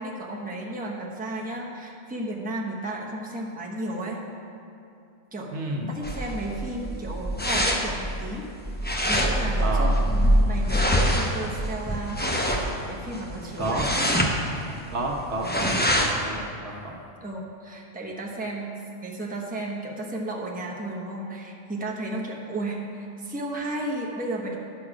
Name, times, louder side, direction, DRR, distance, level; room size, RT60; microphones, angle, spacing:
voice 1, 0.0-4.2 5.3-5.5 5.9-8.4 9.1-12.2 12.9-14.3 15.4-15.7 17.2-18.7 19.0-24.6, right 1 dB, 10° right, -3 dB, 0.9 m, -33 dB
voice 2, 5.5-5.9 9.6-9.9 13.6-13.8 14.9-17.0 18.1-18.2, right 2 dB, 65° right, 0 dB, 1.3 m, -30 dB
sound 1, 6.0-16.2, equal, 10° left, 0.6 m, -25 dB
11.0 x 7.0 x 4.9 m, 2.5 s
omnidirectional pair, 1.3 m